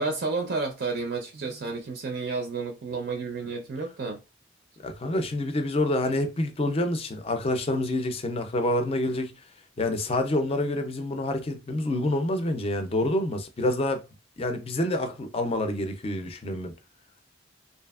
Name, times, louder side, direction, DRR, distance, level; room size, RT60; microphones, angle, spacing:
voice 1, 0.0-4.2, right 4 dB, 55° right, 0.5 m, -31 dB
voice 2, 4.8-9.3 9.8-14.0 14.4-16.7, left 1 dB, 30° left, 0.4 m, -27 dB
2.7 x 2.4 x 2.3 m
head